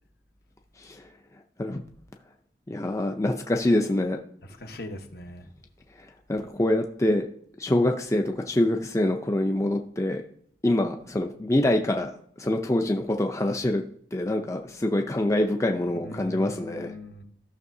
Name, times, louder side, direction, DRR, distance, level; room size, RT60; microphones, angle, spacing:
voice 1, 2.7-4.2 6.3-7.3 7.6-10.2 10.6-12.1 12.4-13.8 14.1-16.9, left 1 dB, 15° left, 0.5 m, -25 dB
voice 2, 4.6-5.5 16.0-17.2, left 1 dB, 60° left, 1.1 m, -40 dB
13.5 x 6.2 x 2.7 m
head